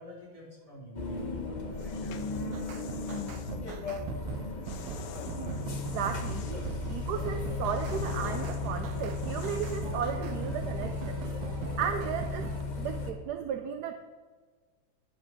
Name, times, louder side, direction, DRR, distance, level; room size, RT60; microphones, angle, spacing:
voice 1, 0.0-2.4, right 1 dB, 15° right, -6 dB, 4.0 m, -49 dB
sound 1, 0.9-13.1, left 3 dB, 35° left, 0.7 m, -35 dB
sound 2, 1.7-3.6 4.6-6.7 7.1-10.0, left 8 dB, 65° left, 0.9 m, -46 dB
sound 3, 2.5-12.6, right 12 dB, 85° right, 1.4 m, -42 dB
voice 2, 5.9-6.6 6.9-11.2 11.8-12.5 12.8-13.9, right 8 dB, 70° right, 7 dB, 1.0 m, -34 dB
11.0 x 6.2 x 6.1 m, 1.4 s
omnidirectional pair, 2.2 m